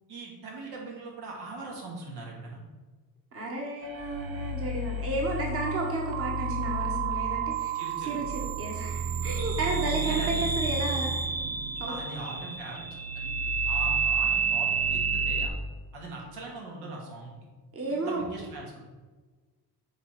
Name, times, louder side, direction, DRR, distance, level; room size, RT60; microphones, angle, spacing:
voice 1, 0.1-2.6 7.7-8.2 10.0-10.4 11.9-15.5 15.9-17.3 17.9-18.8, right 2 dB, 85° right, -2 dB, 2.5 m, -41 dB
voice 2, 3.3-7.7 8.0-11.2 11.8-11.9 17.7-18.2, right 2 dB, 35° right, -1 dB, 1.5 m, -32 dB
sound 1, 3.8-15.5, right 4 dB, 60° right, 1.0 m, -30 dB
8.2 x 4.4 x 5.8 m, 1.3 s
cardioid pair, 145°, 39 cm